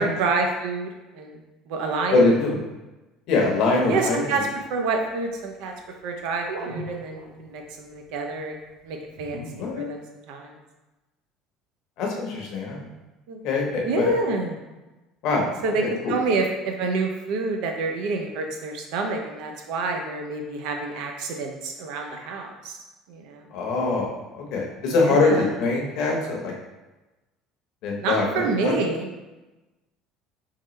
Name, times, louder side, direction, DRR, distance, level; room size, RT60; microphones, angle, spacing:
voice 1, 0.0-1.4 1.7-2.3 3.9-5.7 6.0-8.6 8.8-10.0 10.3-10.6 13.3-13.4 13.8-14.6 15.6-15.8 16.1-22.8 23.1-23.5 24.9-25.5 28.0-29.1, right 3 dB, 70° right, 3 dB, 0.6 m, -28 dB
voice 2, 2.1-2.6 3.3-4.4 9.6-10.0 12.0-12.9 13.4-14.1 15.2-15.5 15.8-16.1 23.5-26.5 27.8-28.7, left 3 dB, 55° left, -1 dB, 0.9 m, -23 dB
sound 1, 3.8-5.1 6.5-7.5 8.0-8.1 9.1-9.7, right 1 dB, 85° right, 1.0 m, -37 dB
3.8 x 3.3 x 3.1 m, 1.1 s
cardioid pair, 160°, 0 cm